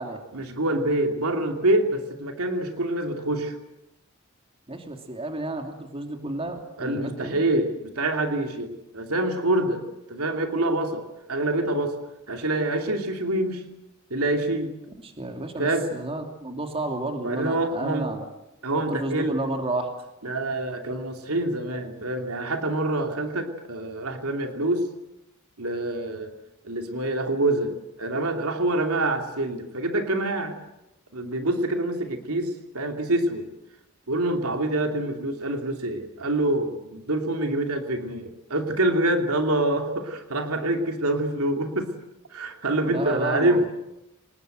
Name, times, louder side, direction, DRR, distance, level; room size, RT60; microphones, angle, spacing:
voice 1, 0.3-3.5 6.8-9.8 10.1-11.0 11.3-12.0 12.3-13.6 14.1-14.7 15.6-15.9 17.2-18.1 18.6-19.4 20.2-24.8 25.6-26.3 26.6-27.7 28.0-30.6 31.1-33.4 34.1-41.9 42.3-43.7, right 1 dB, 85° right, 4 dB, 2.8 m, -26 dB
voice 2, 4.7-7.4 15.0-18.3 18.9-19.9 42.8-43.7, right 2 dB, 25° right, 4 dB, 2.9 m, -31 dB
26.0 x 20.5 x 7.9 m, 0.92 s
head